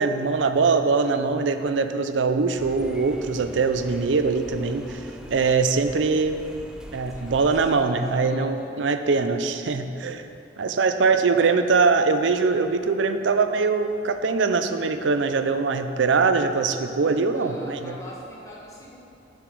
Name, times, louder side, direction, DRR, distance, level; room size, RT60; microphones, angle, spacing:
voice 1, 0.0-5.0 5.3-6.4 6.9-10.3 10.6-17.9, right 4 dB, 80° right, 9 dB, 0.5 m, -22 dB
sound 1, 2.6-7.7, equal, 5° right, 0.5 m, -42 dB
voice 2, 7.1-9.0 11.1-11.4 17.3-19.0, left 1 dB, 15° left, -4 dB, 1.4 m, -42 dB
8.0 x 6.9 x 5.3 m, 2.7 s
head